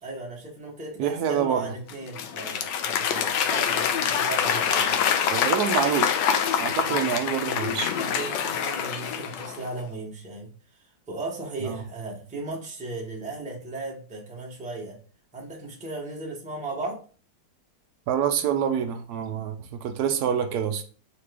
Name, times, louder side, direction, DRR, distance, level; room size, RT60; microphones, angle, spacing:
voice 1, 0.0-5.1 6.8-7.1 7.9-10.5 10.8-15.0 15.3-17.0, right 2 dB, 10° right, -1 dB, 0.5 m, -36 dB
voice 2, 1.0-1.7 5.3-6.1 6.6-7.9 11.6-11.8 18.1-20.8, right 8 dB, 70° right, 7 dB, 0.9 m, -26 dB
Applause / Crowd, 1.9-9.7, left 8 dB, 75° left, 1.1 m, -25 dB
4.2 x 2.9 x 3.3 m, 0.38 s
omnidirectional pair, 2.1 m